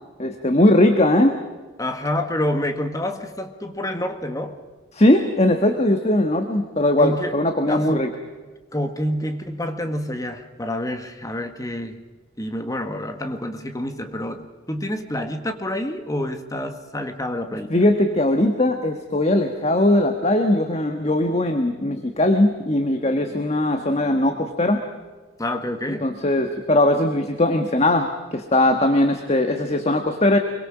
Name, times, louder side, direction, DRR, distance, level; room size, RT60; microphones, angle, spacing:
voice 1, 0.2-1.4 4.9-8.1 17.7-24.8 26.0-30.4, left 1 dB, 35° left, 5 dB, 1.4 m, -19 dB
voice 2, 1.8-4.6 7.0-7.4 7.7-8.1 8.7-12.0 12.4-17.8 25.4-26.1, left 1 dB, 15° left, 6 dB, 1.6 m, -28 dB
26.0 x 23.5 x 5.0 m, 1.3 s
head